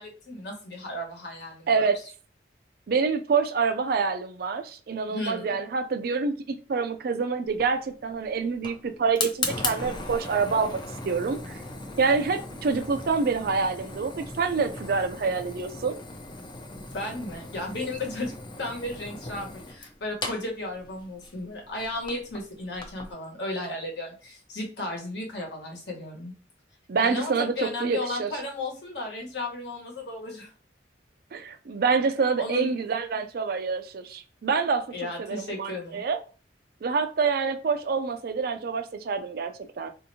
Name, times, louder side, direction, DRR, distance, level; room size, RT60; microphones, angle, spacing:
voice 1, 0.0-1.7 5.1-5.6 16.9-26.3 27.0-30.5 32.4-32.7 34.9-36.0, left 2 dB, 65° left, 1.2 m, -34 dB
voice 2, 1.7-2.0 2.9-10.8 11.1-11.5 12.0-16.0 26.9-28.3 31.3-34.8 35.2-36.2 36.8-39.9, right 5 dB, 55° right, 0.4 m, -26 dB
Fire, 7.5-23.1, left 3 dB, 25° left, 0.5 m, -38 dB
4.2 x 2.7 x 2.7 m
head